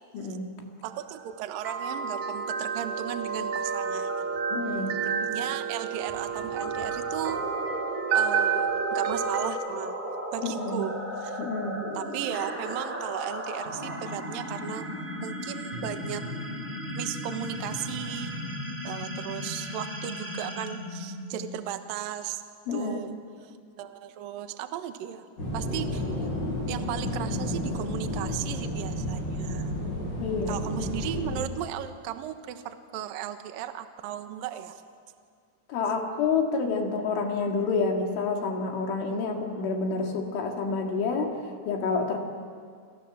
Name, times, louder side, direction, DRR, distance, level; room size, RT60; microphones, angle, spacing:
voice 1, 0.1-0.5 4.5-5.0 10.4-10.8 11.4-11.8 22.7-23.2 30.2-30.9 35.7-42.2, left 4 dB, 70° left, 2 dB, 4.6 m, -29 dB
voice 2, 0.8-4.3 5.0-7.4 8.1-10.0 10.3-11.4 11.9-14.9 15.2-16.3 16.9-18.4 18.8-22.4 22.7-23.1 23.4-25.3 25.5-26.2 26.7-29.7 30.5-34.8 39.1-39.2, right 11 dB, 75° right, 8 dB, 2.1 m, -36 dB
sound 1, 0.9-9.5, right 6 dB, 55° right, 2.5 m, -30 dB
sound 2, 6.6-21.7, equal, 10° right, 2.9 m, -36 dB
sound 3, 25.4-31.5, left 1 dB, 20° left, 8.2 m, -31 dB
28.5 x 27.0 x 7.4 m, 2.2 s
omnidirectional pair, 6.0 m